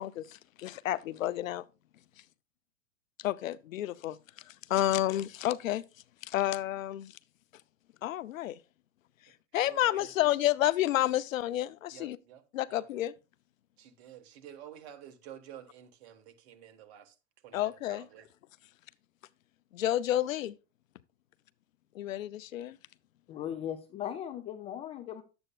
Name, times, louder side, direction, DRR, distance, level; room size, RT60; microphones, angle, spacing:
voice 1, 0.0-1.6 3.2-4.2 4.5-5.8 6.2-7.2 8.0-8.6 9.5-12.2 12.5-13.1 17.5-18.1 19.7-20.5 21.9-22.8, left 13 dB, 80° left, 0.6 m, -30 dB
voice 2, 9.6-10.1 11.9-12.9 13.8-17.2 17.4-18.3, right 10 dB, 55° right, 1.5 m, -51 dB
voice 3, 23.3-25.2, left 10 dB, 15° left, 0.3 m, -38 dB
11.0 x 7.9 x 2.4 m
hypercardioid pair, 125°, 39 cm